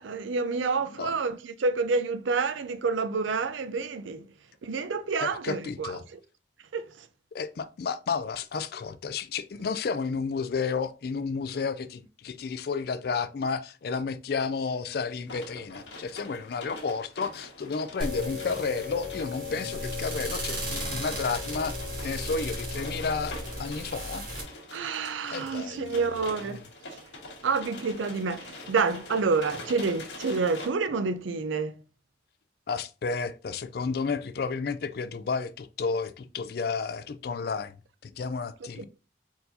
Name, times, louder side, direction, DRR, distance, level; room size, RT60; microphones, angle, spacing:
voice 1, 0.0-4.3 4.6-5.9 6.7-7.1 24.7-26.6 27.4-31.8 38.8-38.9, right 4 dB, 80° right, 0.5 m, -28 dB
voice 2, 5.2-6.0 7.3-21.7 22.0-24.3 25.3-26.1 26.5-26.6 32.7-37.7 38.0-38.8, left 5 dB, 55° left, 0.4 m, -32 dB
sound 1, 15.3-30.7, left 2 dB, 75° left, 1.6 m, -45 dB
sound 2, 18.0-24.4, left 1 dB, 50° right, 2.2 m, -35 dB
4.5 x 4.0 x 2.6 m
head